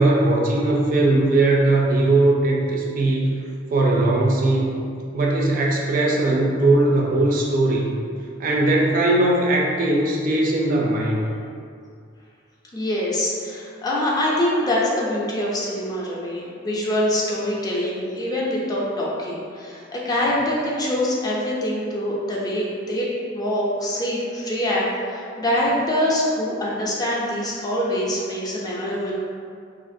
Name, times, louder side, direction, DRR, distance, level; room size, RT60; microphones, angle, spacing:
voice 1, 0.0-3.3 3.7-4.8 5.1-8.0 8.4-11.2, right 2 dB, 45° right, -2 dB, 0.4 m, -19 dB
voice 2, 12.7-29.1, left 1 dB, 20° left, -5 dB, 0.4 m, -24 dB
2.8 x 2.4 x 2.6 m, 2.3 s
head